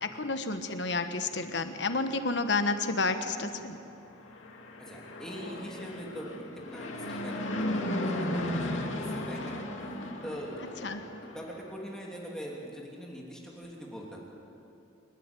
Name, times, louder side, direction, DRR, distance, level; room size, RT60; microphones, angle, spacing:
voice 1, 0.0-3.8 10.8-11.0, left 3 dB, 65° left, 8 dB, 1.2 m, -30 dB
Fixed-wing aircraft airplane, 4.2-11.6, left 1 dB, 90° left, 2.5 m, -35 dB
voice 2, 4.8-6.3 6.7-10.9 11.2-14.2, equal, 5° left, -3 dB, 3.0 m, -42 dB
28.0 x 12.0 x 9.1 m, 2.9 s
head